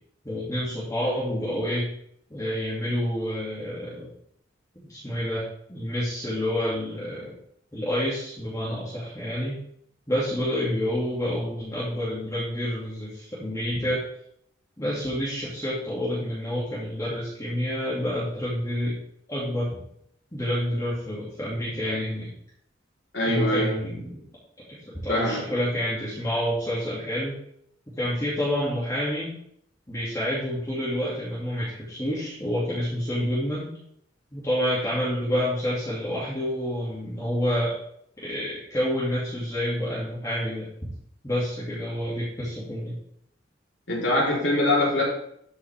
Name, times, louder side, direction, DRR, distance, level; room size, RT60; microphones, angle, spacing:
voice 1, 0.2-1.9 2.3-4.1 4.9-7.3 7.7-9.6 10.1-14.1 14.8-18.9 19.3-19.8 20.3-22.3 23.3-24.2 24.9-27.4 28.0-29.3 29.9-33.7 34.3-37.7 38.2-40.7 41.2-43.0, equal, 15° left, -8 dB, 2.3 m, -28 dB
voice 2, 23.1-23.8 25.1-25.4 43.9-45.0, left 1 dB, 65° left, -4 dB, 3.8 m, -23 dB
13.0 x 6.0 x 3.5 m, 0.71 s
head